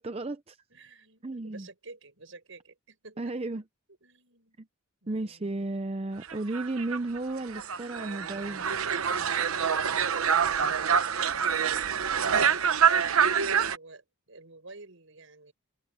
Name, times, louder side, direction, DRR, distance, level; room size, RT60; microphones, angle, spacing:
voice 1, 0.0-0.6 1.2-1.7 3.2-3.6 4.6-4.7 5.1-8.7, right 2 dB, 30° right, 0.6 m, -33 dB
voice 2, 0.7-3.3 4.0-4.6 5.0-5.9 13.2-15.5, right 3 dB, 70° right, 5.5 m, -51 dB
sound 1, 6.3-13.8, right 7 dB, 85° right, 1.0 m, -26 dB
open air
head